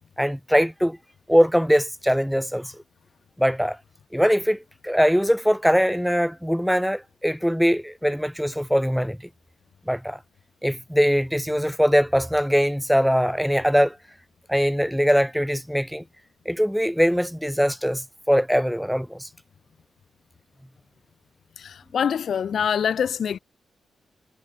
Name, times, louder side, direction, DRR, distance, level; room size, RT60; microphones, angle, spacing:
voice 1, 0.2-1.0 1.3-2.7 3.4-3.8 4.1-4.6 4.8-9.2 9.9-10.2 10.6-13.9 14.5-16.0 16.5-19.3, equal, ahead, 1.0 m, -21 dB
voice 2, 21.6-23.4, left 7 dB, 65° left, 1.4 m, -25 dB
cardioid pair, 100°, 0 cm